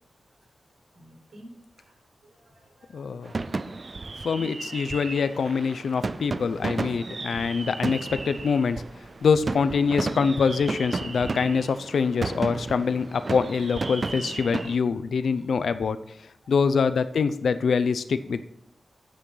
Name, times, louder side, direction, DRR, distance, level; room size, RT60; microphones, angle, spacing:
voice 1, 0.9-1.5 1.8-2.0 2.2-3.5 3.7-3.9 4.3-4.5 8.0-8.2 16.4-16.6, equal, 85° right, 0 dB, 4.2 m, -52 dB
voice 2, 2.9-3.3 4.2-8.8 9.2-16.0 16.5-18.4, left 5 dB, 80° left, 12 dB, 0.7 m, -24 dB
sound 1, 3.3-14.8, right 3 dB, 35° right, 0.4 m, -33 dB
12.5 x 8.6 x 4.0 m, 0.75 s
wide cardioid pair, 160°, 0 cm